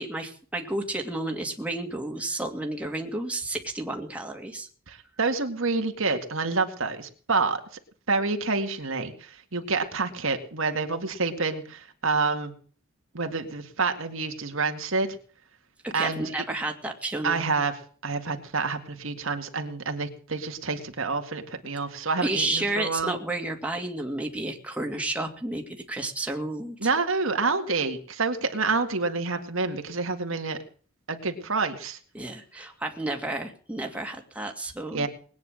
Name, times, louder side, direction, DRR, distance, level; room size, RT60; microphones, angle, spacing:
voice 1, 0.0-4.7 15.8-17.4 22.2-26.9 32.1-35.1, right 2 dB, 5° right, 2 dB, 2.4 m, -31 dB
voice 2, 4.9-7.6 8.1-12.5 13.1-15.1 15.9-16.2 17.2-23.1 26.8-30.6 31.1-32.0 34.9-35.1, right 4 dB, 65° right, 6 dB, 2.1 m, -28 dB
20.5 x 9.6 x 6.5 m, 0.44 s
head